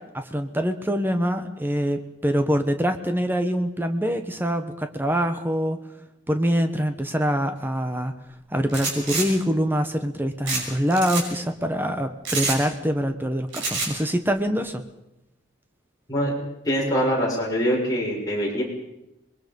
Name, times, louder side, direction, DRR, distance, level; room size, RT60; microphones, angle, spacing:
voice 1, 0.0-5.8 6.3-8.1 8.5-14.8, equal, 10° right, 8 dB, 1.2 m, -24 dB
sound 1, 8.7-9.3 10.5-10.6 10.9-11.2 12.3-12.6 13.5-13.9, right 3 dB, 75° right, 6.0 m, -26 dB
voice 2, 16.6-18.6, equal, 20° left, -4 dB, 6.7 m, -23 dB
27.0 x 21.5 x 5.4 m, 0.88 s
head